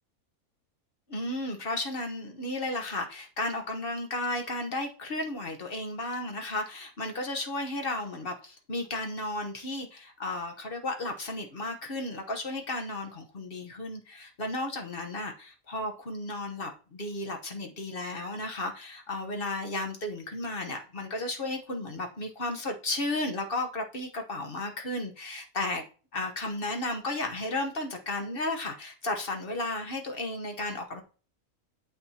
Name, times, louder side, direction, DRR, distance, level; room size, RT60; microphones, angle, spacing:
voice 1, 1.1-25.8 26.1-31.0, left 2 dB, 40° left, 1.2 m, -34 dB
8.7 x 7.0 x 2.8 m
omnidirectional pair, 1.6 m